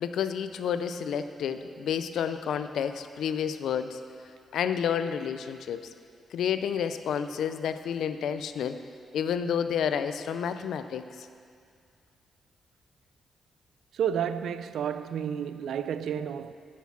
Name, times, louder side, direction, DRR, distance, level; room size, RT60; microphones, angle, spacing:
voice 1, 0.0-4.0 4.5-5.9 6.3-8.8 9.1-11.3, left 8 dB, 85° left, 0.5 m, -30 dB
voice 2, 13.9-16.5, right 8 dB, 85° right, 0.4 m, -31 dB
9.3 x 6.4 x 7.2 m
cardioid pair, 95°, 0 cm